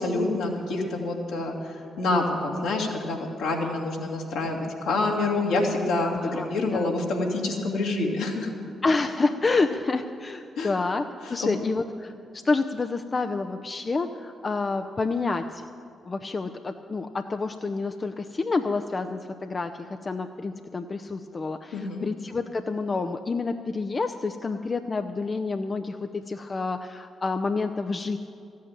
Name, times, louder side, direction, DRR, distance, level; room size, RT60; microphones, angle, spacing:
voice 1, 0.0-8.5 10.6-10.7 11.2-11.5 21.7-22.1, left 2 dB, 75° left, -1 dB, 2.2 m, -27 dB
voice 2, 6.0-6.5 6.7-6.9 8.8-15.6 16.1-28.2, left 3 dB, 40° left, 7 dB, 0.6 m, -28 dB
14.0 x 8.5 x 8.9 m, 2.5 s
hypercardioid pair, 40°, 0 cm